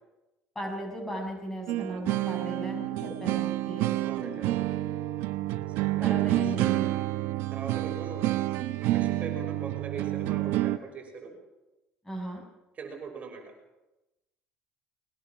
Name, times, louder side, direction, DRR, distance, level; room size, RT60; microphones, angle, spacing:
voice 1, 0.5-3.9 6.0-6.9 12.0-12.4, right 1 dB, 10° left, 2 dB, 6.5 m, -36 dB
sound 1, 1.7-10.8, right 16 dB, 75° right, 1.0 m, -29 dB
voice 2, 4.0-4.7 5.7-6.8 7.5-8.4 8.8-11.3 12.8-13.4, right 5 dB, 35° right, 2 dB, 6.0 m, -41 dB
21.5 x 20.0 x 6.1 m, 0.99 s
cardioid pair, 110°, 4 cm